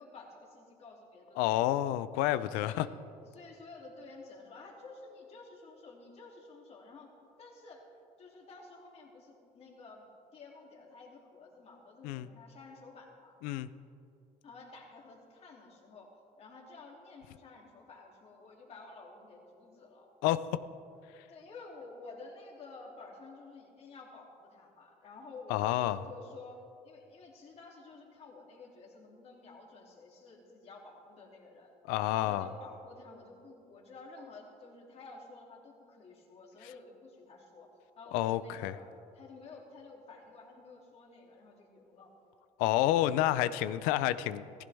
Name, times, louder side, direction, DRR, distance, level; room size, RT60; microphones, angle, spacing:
voice 1, 0.0-1.8 2.6-2.9 3.3-7.1 7.4-7.8 8.2-13.4 14.4-16.1 16.4-20.1 21.3-26.6 26.8-31.7 32.1-37.7 38.0-42.1, left 3 dB, 45° left, -1 dB, 2.8 m, -51 dB
voice 2, 1.4-2.9 12.0-12.3 13.4-13.7 20.2-20.4 25.5-26.0 31.9-32.5 38.1-38.7 42.6-44.6, left 14 dB, 90° left, 15 dB, 0.5 m, -29 dB
15.5 x 15.0 x 3.5 m, 2.5 s
cardioid pair, 100°, 14 cm